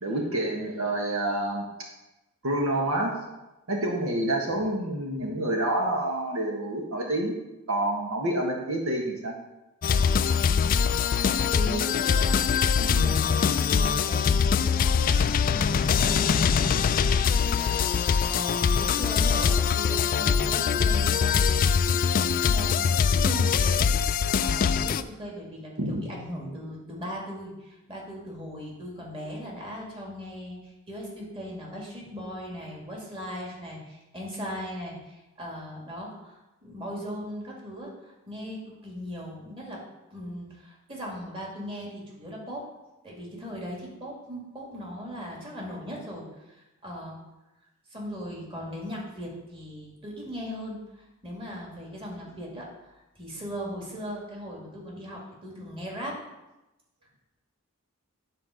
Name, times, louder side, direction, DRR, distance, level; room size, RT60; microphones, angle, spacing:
voice 1, 0.0-1.6 2.4-3.2 3.7-7.3 7.7-9.3 25.8-26.0, right 1 dB, 75° right, 0 dB, 1.5 m, -28 dB
sound 1, 9.8-25.0, left 6 dB, 40° left, 0.3 m, -23 dB
voice 2, 10.6-12.4 12.8-21.5 21.8-22.0 22.5-39.8 40.1-42.7 43.0-47.2 47.9-52.7 53.2-56.2, equal, 25° right, -3 dB, 2.4 m, -38 dB
9.8 x 4.6 x 6.5 m, 1.0 s
head